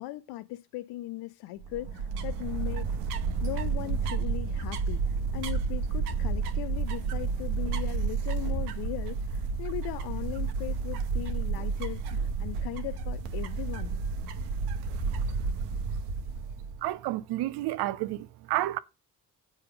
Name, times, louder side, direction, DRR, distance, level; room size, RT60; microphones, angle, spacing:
voice 1, 0.0-5.0 5.3-14.0, left 16 dB, 55° left, 0.6 m, -38 dB
sound 1, 1.6-16.8, right 5 dB, 70° right, 1.1 m, -31 dB
voice 2, 16.8-18.8, right 15 dB, 55° right, 0.7 m, -30 dB
8.4 x 5.1 x 6.7 m
figure-of-eight pair, 40°, 47 cm